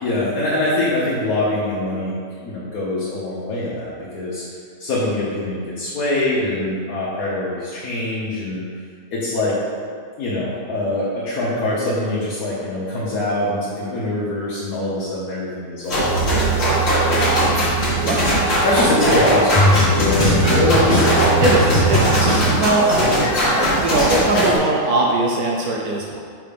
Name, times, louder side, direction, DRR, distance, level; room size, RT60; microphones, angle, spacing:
voice 1, 0.0-2.2 2.4-4.4 4.8-8.6 9.1-9.6 10.2-17.1 18.2-18.3 18.6-21.1, left 1 dB, 70° left, -7 dB, 1.5 m, -23 dB
sound 1, 15.9-24.6, equal, 45° left, 1.6 m, -19 dB
sound 2, 16.0-22.5, right 2 dB, 20° left, 0.9 m, -21 dB
voice 2, 18.0-18.3 21.4-26.2, right 2 dB, 75° right, -1 dB, 1.1 m, -21 dB
5.7 x 3.7 x 5.2 m, 2.1 s
omnidirectional pair, 1.7 m